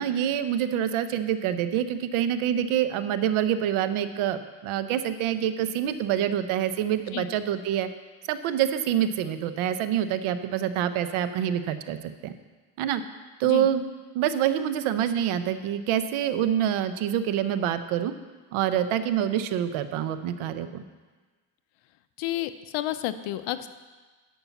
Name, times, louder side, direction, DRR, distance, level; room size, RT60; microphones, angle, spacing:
voice 1, 0.0-7.9 8.3-12.0 12.2-12.3 12.8-13.0 13.4-13.8 14.1-18.1 18.5-20.8, right 10 dB, 85° right, 11 dB, 0.8 m, -26 dB
voice 2, 22.2-23.7, left 14 dB, 85° left, 12 dB, 0.7 m, -30 dB
11.5 x 5.5 x 7.1 m, 1.4 s
cardioid pair, 130°, 48 cm